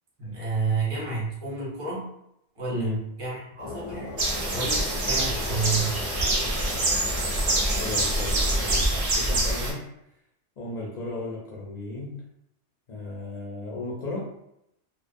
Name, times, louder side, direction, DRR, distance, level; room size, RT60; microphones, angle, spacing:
voice 1, 0.2-2.1 2.6-4.1 4.5-6.0, right 4 dB, 30° right, -5 dB, 0.8 m, -30 dB
voice 2, 2.7-3.0 7.8-9.9 10.6-12.2 12.9-14.3, left 2 dB, 55° left, -4 dB, 0.4 m, -35 dB
sound 1, 3.6-8.8, left 4 dB, 85° left, 0.9 m, -37 dB
sound 2, 4.2-9.7, right 2 dB, 55° right, 0.4 m, -25 dB
2.4 x 2.1 x 2.5 m, 0.79 s
omnidirectional pair, 1.2 m